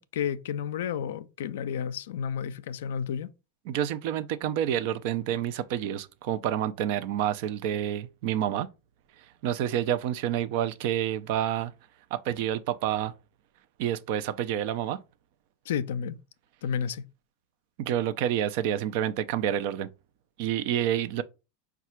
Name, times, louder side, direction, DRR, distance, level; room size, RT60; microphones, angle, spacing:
voice 1, 0.0-3.3 15.7-16.2 16.6-17.0, left 8 dB, 75° left, 0.4 m, -31 dB
voice 2, 3.7-8.7 9.4-11.7 12.1-13.1 13.8-15.0 17.8-19.9 20.4-21.2, right 10 dB, 60° right, 0.4 m, -28 dB
4.7 x 2.3 x 4.4 m
hypercardioid pair, 95°, 0 cm